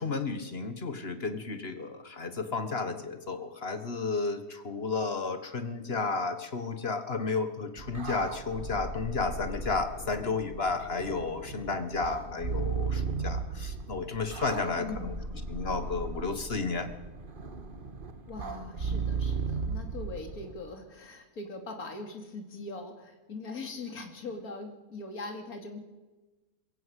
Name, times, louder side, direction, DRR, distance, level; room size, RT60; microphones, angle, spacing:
voice 1, 0.0-15.1 15.5-16.9, left 4 dB, 40° left, 9 dB, 1.6 m, -32 dB
sound 1, 7.8-20.5, right 4 dB, 35° right, 1.5 m, -36 dB
voice 2, 14.7-15.3 18.3-25.8, left 3 dB, 60° left, 4 dB, 3.1 m, -41 dB
22.5 x 15.5 x 8.2 m, 1.1 s
omnidirectional pair, 1.8 m